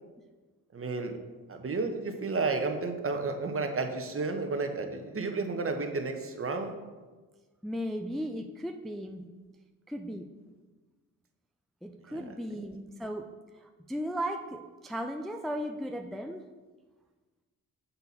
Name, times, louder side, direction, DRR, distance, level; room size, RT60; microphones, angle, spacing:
voice 1, 0.7-1.2 1.5-6.7 12.1-12.2 12.6-12.7, right 3 dB, 35° right, 5 dB, 0.9 m, -32 dB
voice 2, 7.6-9.2 9.9-10.3 11.8-13.3 13.5-16.4, equal, ahead, 5 dB, 0.4 m, -36 dB
6.8 x 4.1 x 4.1 m, 1.3 s
supercardioid pair, 45°, 36 cm